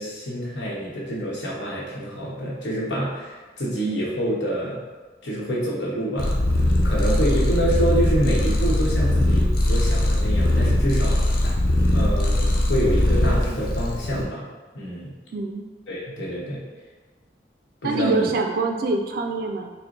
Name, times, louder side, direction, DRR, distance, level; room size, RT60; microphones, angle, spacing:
voice 1, 0.0-4.8 5.2-6.4 6.8-11.2 11.9-14.5 14.7-15.1 15.9-16.6 17.8-18.3, right 1 dB, 85° left, -5 dB, 1.1 m, -27 dB
Purr, 6.2-14.2, left 1 dB, 50° left, 0.5 m, -20 dB
voice 2, 15.3-15.7 17.8-19.7, right 3 dB, 55° right, 4 dB, 0.3 m, -25 dB
4.4 x 2.1 x 3.8 m, 1.3 s
head